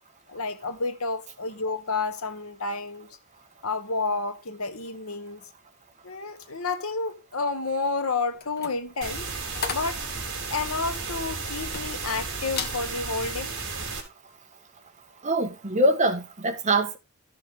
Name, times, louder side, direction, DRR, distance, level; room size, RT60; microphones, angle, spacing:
voice 1, 0.3-3.1 3.6-5.4 6.0-9.2 9.7-10.0 10.5-13.5, left 3 dB, 75° left, 1.2 m, -30 dB
sound 1, 8.3-12.2 12.5-12.8 13.3-13.5, left 5 dB, 50° left, 1.6 m, -36 dB
sound 2, 9.0-14.0, right 4 dB, 60° right, 3.5 m, -33 dB
voice 2, 15.2-17.0, right 1 dB, 35° right, 1.4 m, -23 dB
13.0 x 6.6 x 3.7 m
head